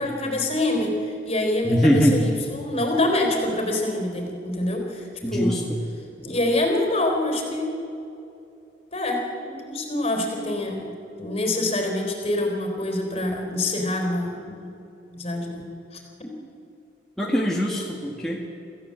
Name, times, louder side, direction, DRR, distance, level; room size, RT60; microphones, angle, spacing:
voice 1, 0.0-5.6 6.2-7.7 8.9-14.7 15.1-15.7 15.9-16.3, left 1 dB, 35° left, 2 dB, 4.0 m, -26 dB
voice 2, 1.6-2.2 5.2-5.6 17.2-18.4, equal, ahead, -3 dB, 2.0 m, -21 dB
26.0 x 15.0 x 7.8 m, 2.7 s
head